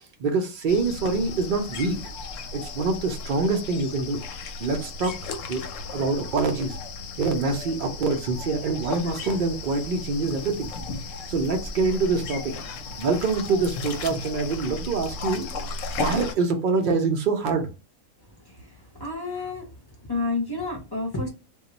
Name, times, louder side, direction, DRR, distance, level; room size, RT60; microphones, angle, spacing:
voice 1, 0.2-2.0 2.5-4.2 4.6-5.1 5.5-5.6 5.9-6.8 7.2-10.7 11.3-12.5 13.0-15.5 16.0-17.7, right 4 dB, 85° right, 5 dB, 0.4 m, -25 dB
sound 1, 0.7-16.3, left 4 dB, 70° left, 0.9 m, -35 dB
voice 2, 8.9-9.4 18.9-19.7 20.1-21.3, left 3 dB, 30° left, 0 dB, 0.4 m, -30 dB
2.3 x 2.1 x 3.8 m, 0.29 s
omnidirectional pair, 1.5 m